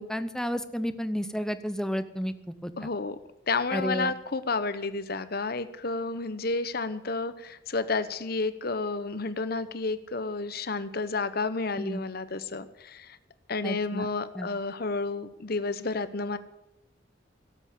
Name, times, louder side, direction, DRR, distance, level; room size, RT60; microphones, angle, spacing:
voice 1, 0.0-2.3 2.6-2.7 3.7-4.1 11.8-12.0 13.6-14.1 14.3-14.5, equal, 5° left, 10 dB, 0.8 m, -31 dB
voice 2, 2.8-3.2 3.5-13.2 13.5-16.4, left 3 dB, 55° left, 12 dB, 1.0 m, -31 dB
17.5 x 8.1 x 8.4 m, 0.88 s
head